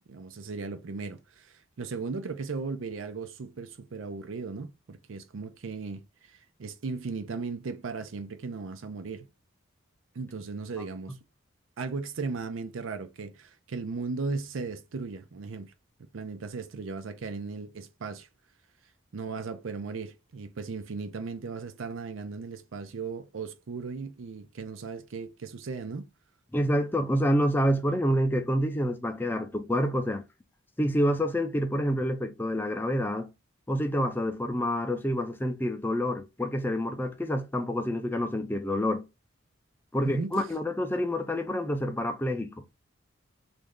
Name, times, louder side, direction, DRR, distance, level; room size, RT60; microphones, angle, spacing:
voice 1, 0.1-9.3 10.1-11.2 11.8-15.7 16.1-18.3 19.1-26.1 40.0-40.5, right 4 dB, 75° right, 0.5 m, -37 dB
voice 2, 26.5-30.2 30.8-33.3 33.7-39.0 39.9-42.5, equal, 10° left, 0.4 m, -27 dB
3.1 x 2.5 x 3.5 m
head